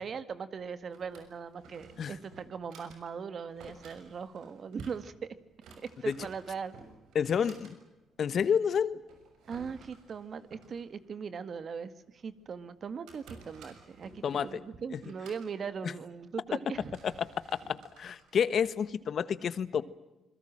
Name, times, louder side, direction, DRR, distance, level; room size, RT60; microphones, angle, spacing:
voice 1, 0.0-5.3 6.0-6.7 9.5-17.0, right 6 dB, 50° right, 13 dB, 1.9 m, -40 dB
Drawer open or close, 0.6-19.1, right 4 dB, 85° right, 6.4 m, -56 dB
voice 2, 7.1-7.7 8.2-9.0 14.2-14.6 17.2-17.3 17.7-19.8, left 7 dB, 55° left, 15 dB, 1.3 m, -29 dB
27.0 x 22.0 x 7.6 m, 0.99 s
cardioid pair, 90°, 0 cm